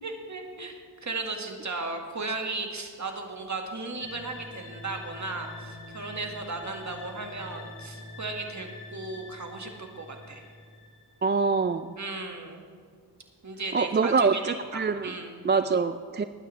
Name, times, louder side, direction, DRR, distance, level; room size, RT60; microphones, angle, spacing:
voice 1, 0.0-10.5 12.0-12.6 13.4-15.7, right 3 dB, 45° right, 3 dB, 1.9 m, -36 dB
sound 1, 4.0-11.5, left 2 dB, 90° left, 2.1 m, -45 dB
voice 2, 11.2-11.9 13.7-15.1 15.4-16.2, right 4 dB, 30° right, 11 dB, 0.4 m, -25 dB
20.0 x 9.3 x 3.3 m, 2.1 s
cardioid pair, 55°, 39 cm